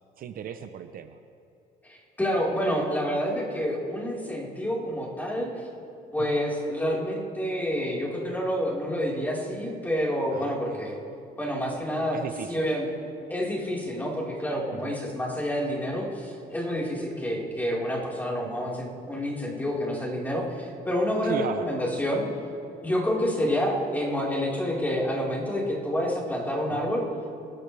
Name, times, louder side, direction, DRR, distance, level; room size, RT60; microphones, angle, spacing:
voice 1, 0.2-1.2 6.2-6.4 10.3-10.8 12.1-12.7 14.7-14.9 21.2-21.8 26.7-26.9, right 8 dB, 60° right, 9 dB, 0.8 m, -36 dB
voice 2, 1.8-5.5 6.1-11.0 11.4-12.2 12.5-12.9 13.3-22.2 22.8-27.0, equal, 10° left, -5 dB, 4.4 m, -28 dB
25.0 x 13.5 x 3.4 m, 2.5 s
cardioid pair, 110°, 17 cm